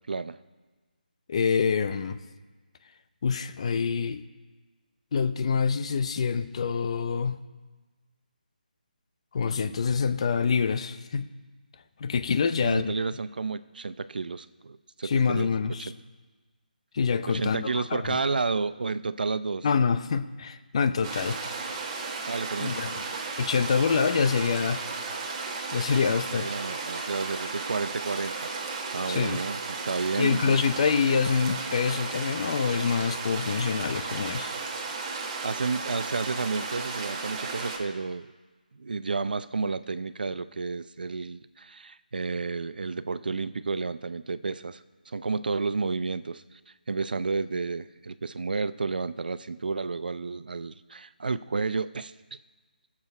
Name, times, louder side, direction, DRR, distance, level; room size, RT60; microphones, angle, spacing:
voice 1, 1.3-2.2 3.2-4.2 5.1-7.4 9.3-11.3 12.0-12.9 15.0-15.9 16.9-18.2 19.6-21.4 22.6-22.9 23.4-24.9 25.7-26.5 29.1-29.4 30.2-34.5, left 5 dB, 40° left, 11 dB, 0.7 m, -26 dB
voice 2, 12.6-15.5 15.8-15.9 17.3-19.7 22.3-22.8 26.3-30.5 35.4-38.3 38.7-46.6 46.9-52.1, right 4 dB, 70° right, 14 dB, 0.5 m, -31 dB
sound 1, 21.0-37.8, right 4 dB, 25° right, 1.6 m, -34 dB
19.0 x 7.4 x 4.9 m, 1.3 s
figure-of-eight pair, 160°, 5 cm